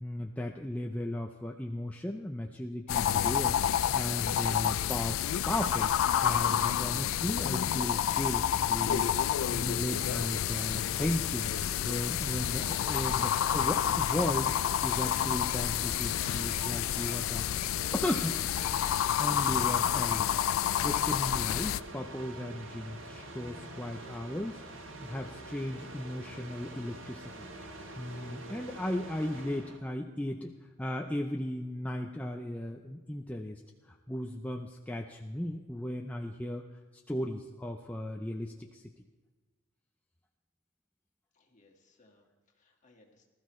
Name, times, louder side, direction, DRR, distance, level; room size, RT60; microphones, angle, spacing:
voice 1, 0.0-9.1 9.5-11.5 11.8-14.5 14.8-17.7 17.9-18.4 19.2-27.5 28.0-30.5 30.8-33.6 33.9-36.6 37.1-38.8, left 1 dB, 5° left, 1 dB, 0.5 m, -36 dB
sound 1, 2.9-21.8, left 10 dB, 80° left, 0.3 m, -29 dB
sound 2, 9.9-29.8, right 2 dB, 65° right, 1.3 m, -46 dB
voice 2, 41.3-43.2, left 2 dB, 35° left, 1 dB, 1.8 m, -65 dB
19.5 x 13.0 x 3.1 m, 1.4 s
head